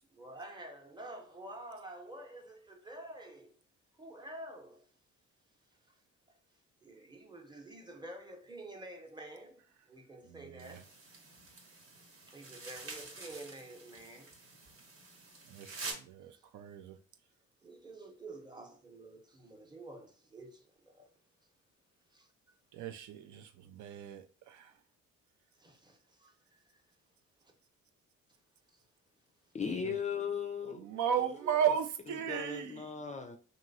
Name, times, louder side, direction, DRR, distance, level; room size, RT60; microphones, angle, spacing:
voice 1, 0.1-3.5 4.0-4.8 6.8-9.6 9.9-10.8 12.3-14.3 16.4-16.5 17.6-21.1 22.1-22.3 25.6-26.8 28.7-28.8 31.1-31.7, right 1 dB, 15° right, 0.8 m, -49 dB
voice 2, 10.3-10.8 15.5-17.0 22.7-24.7 29.8-29.9 30.7-32.9, right 8 dB, 75° right, 0.5 m, -35 dB
sound 1, 10.6-15.9, right 3 dB, 45° right, 1.0 m, -48 dB
voice 3, 29.5-30.9 31.7-31.8 32.3-33.4, left 6 dB, 25° left, 0.4 m, -37 dB
2.9 x 2.7 x 2.6 m
cardioid pair, 90°, 30 cm